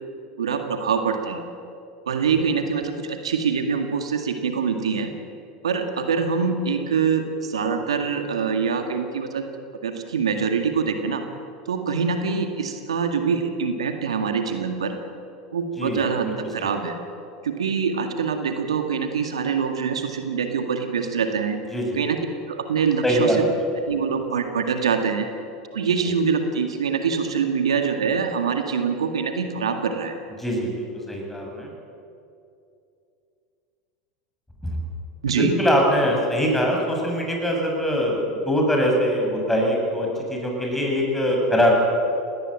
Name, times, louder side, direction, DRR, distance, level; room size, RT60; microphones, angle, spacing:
voice 1, 0.4-1.4 2.1-5.1 5.6-9.5 9.8-11.3 11.7-14.9 15.5-17.0 17.4-21.6 21.9-22.2 22.5-23.4 23.9-25.3 25.7-30.2 35.2-35.6, right 6 dB, 85° right, 6 dB, 1.9 m, -24 dB
voice 2, 15.8-16.7 21.7-22.0 23.0-23.4 26.0-26.1 30.4-31.7 34.6-34.8 35.4-41.7, equal, 5° left, 0 dB, 7.4 m, -23 dB
18.5 x 18.5 x 9.0 m, 2.5 s
hypercardioid pair, 90°, 3 cm